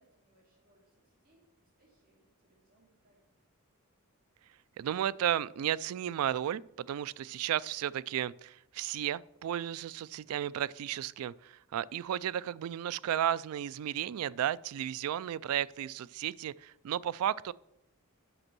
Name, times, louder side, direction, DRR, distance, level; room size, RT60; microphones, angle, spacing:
voice 1, 0.0-3.5, right 1 dB, 45° right, 3.1 m, -70 dB
voice 2, 4.8-17.5, right 10 dB, 75° right, 0.3 m, -33 dB
8.0 x 6.1 x 6.0 m
head